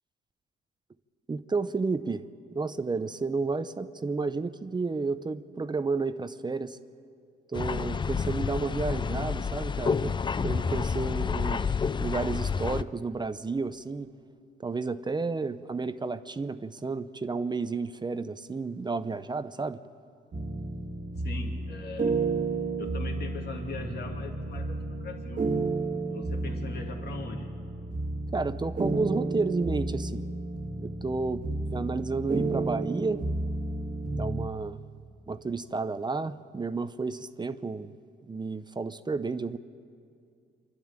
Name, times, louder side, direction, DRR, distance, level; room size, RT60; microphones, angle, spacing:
voice 1, 1.3-6.8 7.5-10.2 10.4-14.1 14.6-19.8 28.3-30.2 30.8-31.4 31.7-33.2 34.1-34.8 35.3-37.9 38.3-39.6, right 4 dB, 20° right, 12 dB, 0.7 m, -31 dB
sound 1, 7.5-12.8, left 5 dB, 25° left, 0.4 m, -29 dB
sound 2, 20.3-34.5, right 3 dB, 40° right, 1.6 m, -32 dB
voice 2, 21.2-22.2 22.8-25.5 26.1-27.6, left 3 dB, 55° left, 2 dB, 2.7 m, -40 dB
25.5 x 12.0 x 8.9 m, 2.3 s
cardioid pair, 90°, 20 cm